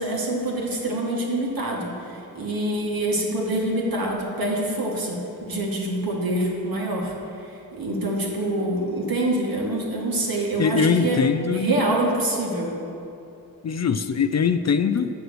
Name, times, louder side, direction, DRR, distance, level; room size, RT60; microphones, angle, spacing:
voice 1, 0.0-5.2 5.5-7.1 7.7-11.2 11.5-12.8, right 1 dB, 65° right, -2 dB, 2.1 m, -25 dB
voice 2, 10.6-11.7 13.6-15.1, left 6 dB, 45° left, 10 dB, 0.5 m, -22 dB
7.8 x 6.8 x 6.2 m, 2.8 s
cardioid pair, 45°, 38 cm